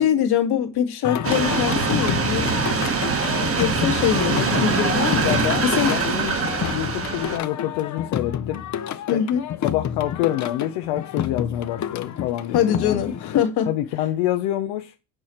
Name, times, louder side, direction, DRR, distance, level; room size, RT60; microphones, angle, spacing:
voice 1, 0.0-2.5 3.6-5.9 9.1-9.4 12.5-13.7, left 9 dB, 60° left, 1.7 m, -23 dB
Singing, 1.0-13.4, left 9 dB, 40° left, 0.7 m, -29 dB
sound 1, 1.2-7.4, right 5 dB, 30° right, 1.1 m, -23 dB
voice 2, 4.1-4.6 5.2-6.4 6.7-8.6 8.9-9.2 9.6-13.0 13.7-14.9, left 13 dB, 85° left, 0.8 m, -27 dB
6.2 x 4.9 x 4.3 m
supercardioid pair, 85°, 42 cm